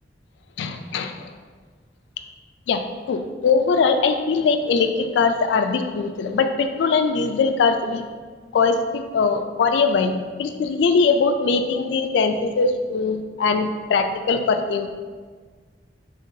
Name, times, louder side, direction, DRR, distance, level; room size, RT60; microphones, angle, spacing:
voice 1, 0.6-1.2 2.7-8.1 8.5-14.9, left 4 dB, 75° left, 7 dB, 0.3 m, -21 dB
4.2 x 3.8 x 2.6 m, 1.5 s
head